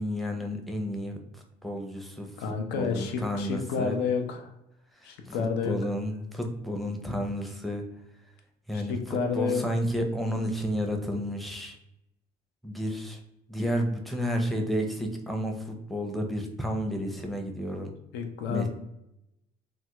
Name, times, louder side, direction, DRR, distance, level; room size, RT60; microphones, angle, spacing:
voice 1, 0.0-2.3 2.8-4.0 5.0-5.4 5.6-7.8 8.7-11.8 12.6-13.2 13.5-17.9 18.5-18.7, equal, ahead, 2 dB, 0.5 m, -31 dB
voice 2, 2.4-4.5 5.0-5.7 8.7-9.6 18.1-18.7, left 5 dB, 85° left, 5 dB, 0.6 m, -30 dB
3.4 x 2.2 x 2.9 m, 0.84 s
cardioid pair, 110°, 17 cm